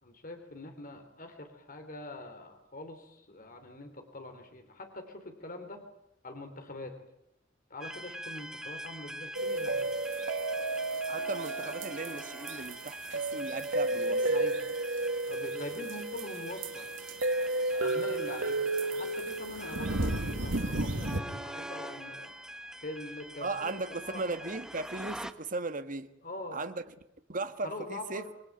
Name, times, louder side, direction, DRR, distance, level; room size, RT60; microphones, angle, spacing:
voice 1, 0.0-5.8 6.2-7.0 7.7-9.9 13.2-13.4 14.1-14.6 15.3-17.2 17.7-22.3 22.8-24.4 26.2-26.6 27.6-28.3, left 2 dB, 45° left, 3.4 m, -44 dB
sound 1, 7.8-25.3, equal, 5° right, 1.3 m, -44 dB
sound 2, 9.3-21.2, right 2 dB, 85° right, 1.9 m, -32 dB
voice 2, 11.0-14.5 23.4-26.1 26.5-26.8 27.3-28.3, right 3 dB, 45° right, 1.6 m, -37 dB
27.5 x 21.0 x 9.0 m
head